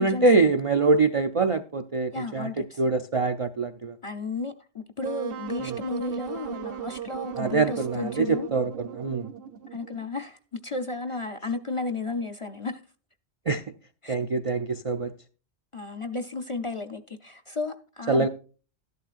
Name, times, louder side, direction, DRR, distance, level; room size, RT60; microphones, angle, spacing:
voice 1, 0.0-2.5 2.8-3.9 5.6-5.8 7.4-9.3 13.5-13.6 14.1-15.1 18.1-18.3, right 3 dB, 45° right, 0.4 m, -24 dB
voice 2, 2.1-2.8 4.0-8.5 9.7-12.8 14.0-14.2 15.7-18.3, left 3 dB, 35° left, 0.6 m, -33 dB
Wind instrument woodwind instrument, 5.0-10.1, right 9 dB, 65° right, 0.9 m, -37 dB
12.0 x 11.0 x 2.5 m
omnidirectional pair, 1.1 m